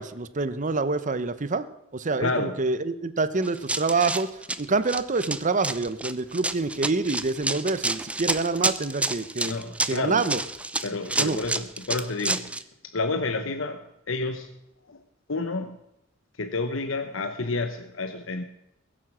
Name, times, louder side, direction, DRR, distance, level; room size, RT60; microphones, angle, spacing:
voice 1, 0.0-1.7 1.9-9.5 9.8-10.4 11.2-11.4, right 3 dB, 40° right, 13 dB, 0.8 m, -26 dB
voice 2, 2.2-2.6 9.4-10.2 10.8-12.5 12.9-13.8 14.1-14.5 14.9-15.0 15.3-15.8 16.4-18.4, left 3 dB, 70° left, 7 dB, 1.0 m, -29 dB
Run, 3.4-12.6, right 2 dB, 5° right, 0.6 m, -29 dB
22.0 x 7.6 x 6.2 m, 0.84 s
head